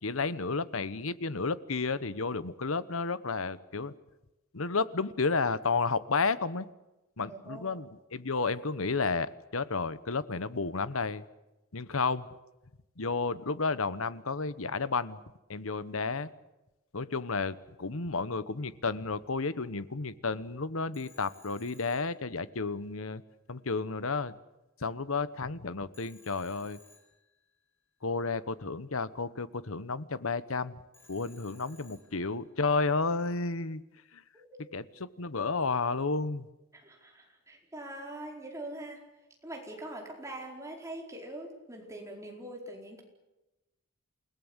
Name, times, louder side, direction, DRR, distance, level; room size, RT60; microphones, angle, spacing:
voice 1, 0.0-3.9 4.5-6.7 7.2-11.2 11.7-12.3 13.0-15.2 15.5-16.3 16.9-23.2 23.5-24.3 24.8-26.8 28.0-30.8 31.1-33.8 34.1-34.2 34.7-36.5, left 4 dB, 75° left, 16 dB, 1.1 m, -32 dB
voice 2, 7.2-7.8 34.3-34.7 36.7-39.0 39.4-43.0, right 1 dB, 15° right, 1 dB, 4.7 m, -43 dB
Telephone, 20.9-22.9 25.9-27.7 30.9-32.6, left 2 dB, 10° left, 5.8 m, -60 dB
28.5 x 18.5 x 8.2 m, 1.0 s
head